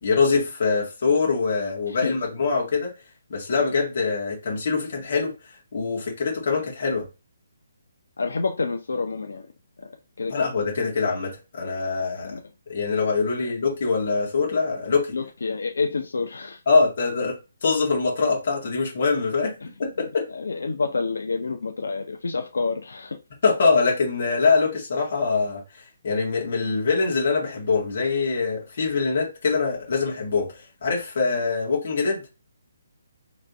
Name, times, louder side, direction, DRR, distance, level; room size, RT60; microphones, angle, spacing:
voice 1, 0.0-2.9 3.3-5.3 5.7-7.1 10.3-12.3 12.7-15.1 16.7-20.3 23.4-32.2, left 4 dB, 40° left, 1.8 m, -24 dB
voice 2, 1.9-2.2 8.2-9.5 9.8-9.9 10.2-10.3 12.2-12.4 15.1-16.6 20.3-23.2, left 4 dB, 80° left, 0.7 m, -28 dB
3.3 x 3.2 x 4.0 m
hypercardioid pair, 180°, 0 cm